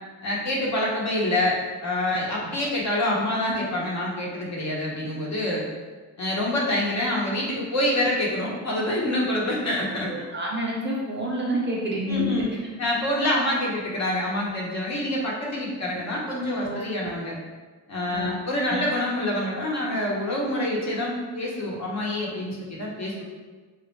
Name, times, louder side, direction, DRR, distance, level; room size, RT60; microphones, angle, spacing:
voice 1, 0.2-5.6 6.2-10.1 12.1-12.5 12.8-17.4 17.9-23.2, left 1 dB, 40° left, -4 dB, 1.0 m, -26 dB
voice 2, 10.1-12.3 16.6-16.8 18.1-18.3 18.7-18.8, equal, 25° right, -3 dB, 0.5 m, -28 dB
3.1 x 2.4 x 3.1 m, 1.3 s
cardioid pair, 85°, 43 cm